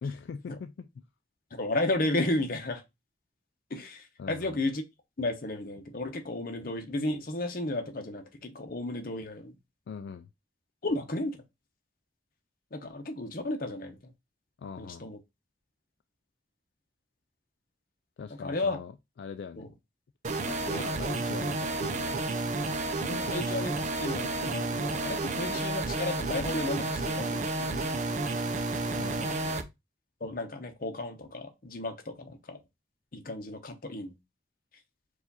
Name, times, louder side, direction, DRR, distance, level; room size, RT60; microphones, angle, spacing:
voice 1, 0.0-1.0 4.2-4.6 9.9-10.3 14.6-15.1 18.2-18.9 19.2-19.7 20.5-22.8 23.1-23.4 29.0-29.7, left 5 dB, 75° left, 0.3 m, -42 dB
voice 2, 1.5-2.8 3.7-4.8 5.2-9.5 10.8-11.4 12.7-14.1 14.8-15.2 18.4-18.8 19.6-19.7 20.7-20.8 23.0-27.9 30.2-32.6 33.1-34.1, left 2 dB, 55° left, 0.8 m, -33 dB
sound 1, 20.2-29.6, right 2 dB, 40° right, 0.5 m, -31 dB
4.7 x 2.5 x 4.0 m
head